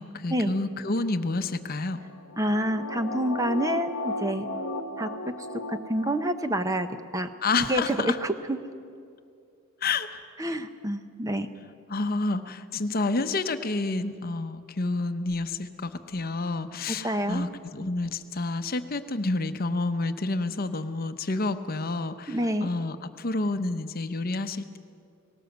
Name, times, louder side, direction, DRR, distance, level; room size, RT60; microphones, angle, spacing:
voice 1, 0.0-2.0 7.4-8.2 9.8-10.2 11.9-24.8, left 3 dB, 45° left, 9 dB, 0.8 m, -29 dB
sound 1, 2.0-6.7 7.1-7.2, left 2 dB, 90° left, 1.0 m, -35 dB
voice 2, 2.4-4.5 5.0-5.1 5.4-6.9 7.1-7.3 7.7-8.6 10.4-11.5 17.0-17.5 22.3-22.7, right 1 dB, 15° right, 9 dB, 0.7 m, -28 dB
19.0 x 18.0 x 8.0 m, 2.4 s
head